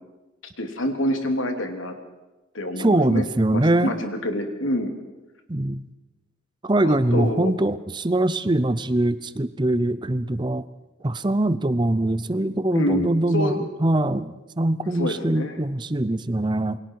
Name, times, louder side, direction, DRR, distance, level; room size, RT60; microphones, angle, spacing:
voice 1, 0.6-1.9 2.5-3.2 3.5-4.9 6.8-7.5 12.7-13.7 14.9-15.6, left 1 dB, 85° left, 5 dB, 3.0 m, -27 dB
voice 2, 2.8-3.9 5.5-5.8 6.6-10.6 11.0-16.8, right 1 dB, 25° right, 14 dB, 0.7 m, -22 dB
28.0 x 22.5 x 4.8 m, 1.1 s
head